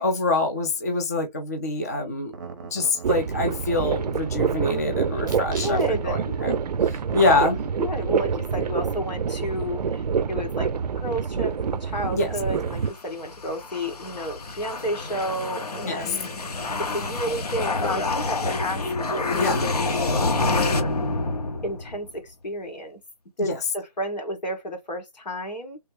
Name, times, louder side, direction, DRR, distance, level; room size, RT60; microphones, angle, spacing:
voice 1, 0.0-2.3 2.7-6.6 6.8-7.6 12.1-12.3 15.9-16.2 19.3-19.7 23.4-23.6, left 2 dB, 25° left, 0.4 m, -25 dB
sound 1, 2.3-4.7 5.2-6.1 6.9-7.3, right 5 dB, 30° right, 0.7 m, -42 dB
sound 2, 3.0-12.9, right 6 dB, 70° right, 0.4 m, -26 dB
voice 2, 5.5-6.2 7.3-16.2 16.8-20.9 21.6-23.0 23.4-25.8, equal, 85° left, 1.6 m, -32 dB
sound 3, 12.7-22.1, left 3 dB, 65° left, 0.9 m, -27 dB
3.3 x 2.0 x 3.1 m
hypercardioid pair, 165°, 21 cm